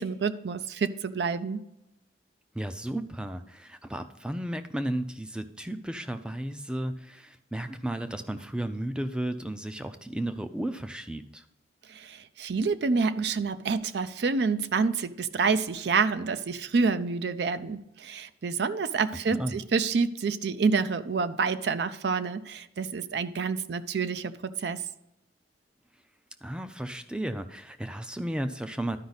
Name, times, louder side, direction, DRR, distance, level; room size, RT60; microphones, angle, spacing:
voice 1, 0.0-1.6 11.9-24.8, right 4 dB, 65° right, 13 dB, 0.4 m, -28 dB
voice 2, 2.5-11.4 19.3-19.6 26.4-29.0, right 1 dB, 5° right, 9 dB, 0.4 m, -34 dB
12.0 x 5.1 x 4.0 m, 0.86 s
head